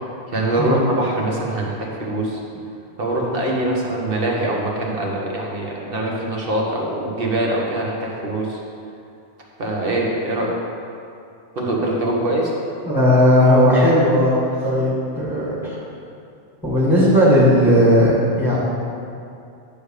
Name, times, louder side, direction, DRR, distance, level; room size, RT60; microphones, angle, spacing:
voice 1, 0.3-2.4 3.0-8.6 9.6-10.6 11.5-12.5, right 1 dB, 55° right, -2 dB, 1.4 m, -23 dB
voice 2, 12.9-15.8 16.6-18.6, equal, ahead, -6 dB, 2.0 m, -16 dB
9.7 x 3.4 x 6.6 m, 2.5 s
omnidirectional pair, 1.2 m